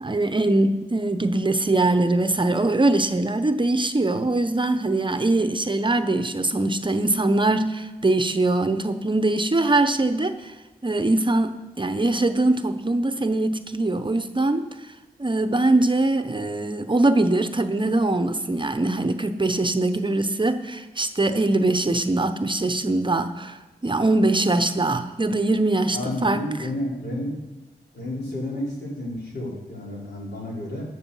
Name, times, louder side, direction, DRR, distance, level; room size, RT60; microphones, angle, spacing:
voice 1, 0.0-10.5 10.8-14.7 15.2-23.6 23.8-26.4, right 2 dB, 30° right, 9 dB, 0.7 m, -22 dB
voice 2, 25.9-27.3 27.9-30.8, left 1 dB, 75° left, -4 dB, 3.9 m, -31 dB
13.0 x 8.0 x 5.5 m, 1.1 s
wide cardioid pair, 80°, 17 cm